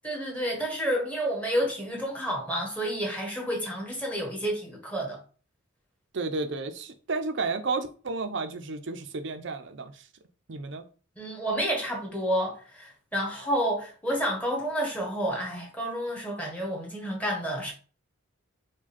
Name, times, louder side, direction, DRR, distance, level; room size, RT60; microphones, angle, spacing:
voice 1, 0.0-5.2 11.2-17.7, equal, 5° left, 1.1 m, -30 dB
voice 2, 6.1-10.1 10.5-10.8, right 3 dB, 60° right, 0.5 m, -32 dB
4.8 x 2.3 x 4.2 m
head